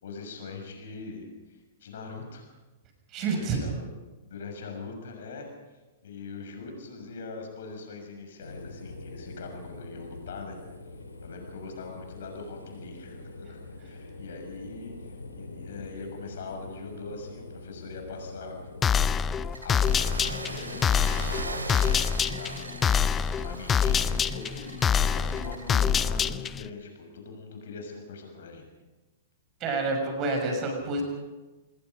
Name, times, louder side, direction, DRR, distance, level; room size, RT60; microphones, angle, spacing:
voice 1, 0.0-2.5 3.2-3.9 4.2-5.5 6.0-10.6 11.2-18.6 19.6-28.6, left 4 dB, 55° left, 4 dB, 6.5 m, -42 dB
voice 2, 3.1-3.6 29.6-31.0, right 3 dB, 30° right, 3 dB, 6.6 m, -28 dB
sound 1, 8.4-19.2, left 2 dB, 80° left, 2.8 m, -44 dB
sound 2, 18.8-26.7, left 7 dB, 20° left, 0.6 m, -26 dB
sound 3, 19.5-25.8, right 3 dB, 75° right, 2.6 m, -40 dB
27.0 x 21.0 x 5.3 m, 1.1 s
figure-of-eight pair, 105°, 0 cm